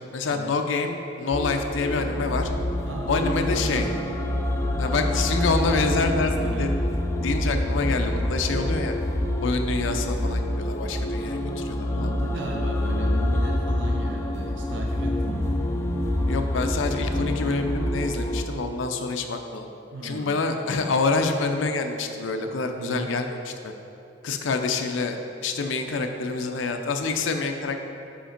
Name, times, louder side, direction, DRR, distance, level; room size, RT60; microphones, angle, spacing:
voice 1, 0.0-2.5 3.0-3.9 4.8-6.7 7.2-8.9 9.4-12.1 16.3-19.7 20.0-23.7 24.2-27.8, left 4 dB, 90° left, 5 dB, 0.5 m, -27 dB
sound 1, 1.3-18.5, left 1 dB, 15° left, 0.3 m, -26 dB
voice 2, 2.8-3.9 6.4-6.7 11.9-15.6 19.9-20.4 22.8-23.1, right 2 dB, 75° right, 0 dB, 0.6 m, -35 dB
5.1 x 5.1 x 5.1 m, 2.9 s
head